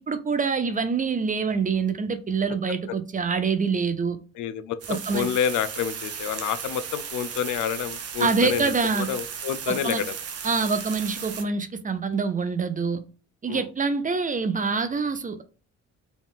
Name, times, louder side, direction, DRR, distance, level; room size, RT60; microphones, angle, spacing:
voice 1, 0.0-4.2 4.9-5.3 8.2-9.1 9.7-10.0 10.4-13.0 13.4-15.4, right 5 dB, 25° right, 0.5 m, -25 dB
voice 2, 4.4-8.7 9.0-10.1 13.5-13.6, left 9 dB, 80° left, 0.5 m, -28 dB
sound 1, 4.8-11.4, right 7 dB, 55° right, 0.8 m, -35 dB
4.1 x 2.4 x 3.6 m
cardioid pair, 90°, 30 cm